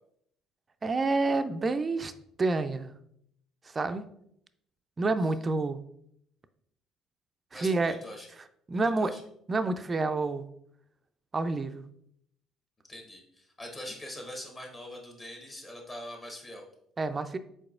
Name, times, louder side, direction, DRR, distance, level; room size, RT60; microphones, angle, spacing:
voice 1, 0.8-2.1 2.4-2.9 3.7-4.0 5.0-5.8 7.5-7.9 8.7-9.1 9.5-10.4 11.3-11.8 17.0-17.4, right 3 dB, 30° right, 10 dB, 0.3 m, -28 dB
voice 2, 7.5-8.3 9.0-9.2 12.9-16.6, left 1 dB, 25° left, 1 dB, 1.0 m, -43 dB
4.7 x 4.0 x 2.4 m, 0.72 s
figure-of-eight pair, 55°, 0 cm